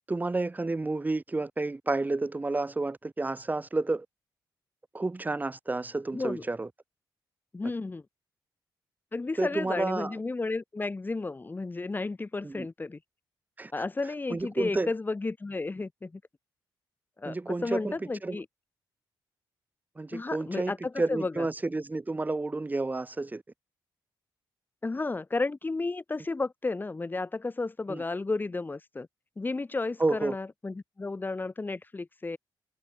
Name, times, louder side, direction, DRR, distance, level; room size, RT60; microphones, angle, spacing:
voice 1, 0.1-4.1 4.9-6.7 9.4-10.1 12.4-12.7 13.6-13.7 14.3-14.9 17.3-18.4 20.0-23.4 27.9-28.0 30.0-30.4, right 2 dB, 20° right, 5.3 m, -30 dB
voice 2, 6.1-6.4 7.5-8.0 9.1-13.0 13.7-16.2 17.2-18.5 20.1-21.5 24.8-29.1 29.4-32.4, left 3 dB, 25° left, 2.6 m, -33 dB
cardioid pair, 100°, 8 cm